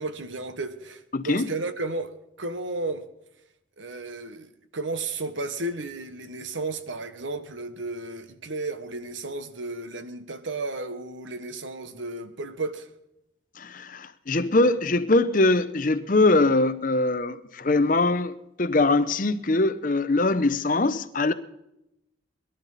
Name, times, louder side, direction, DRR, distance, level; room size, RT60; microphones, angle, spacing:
voice 1, 0.0-3.0 3.8-12.9, right 2 dB, 90° right, 1.3 m, -33 dB
voice 2, 1.1-1.5 13.6-21.3, left 2 dB, 45° left, 0.8 m, -22 dB
22.5 x 12.0 x 4.2 m
head